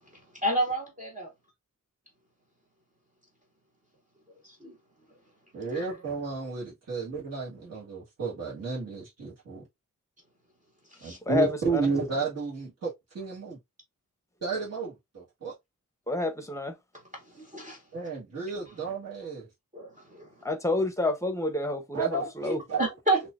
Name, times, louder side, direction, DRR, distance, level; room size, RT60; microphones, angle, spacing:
voice 1, 0.4-1.3 4.4-4.8 5.7-5.8 10.9-11.2 17.1-17.8 19.7-20.3 22.8-23.2, right 1 dB, 25° right, 0.8 m, -30 dB
voice 2, 5.5-9.6 11.0-13.6 14.4-15.5 17.9-19.5 21.9-22.8, right 4 dB, 50° right, 1.6 m, -32 dB
voice 3, 11.3-11.8 16.1-16.7 20.4-22.6, left 2 dB, 10° left, 0.8 m, -28 dB
4.3 x 2.6 x 2.4 m
wide cardioid pair, 130°, 32 cm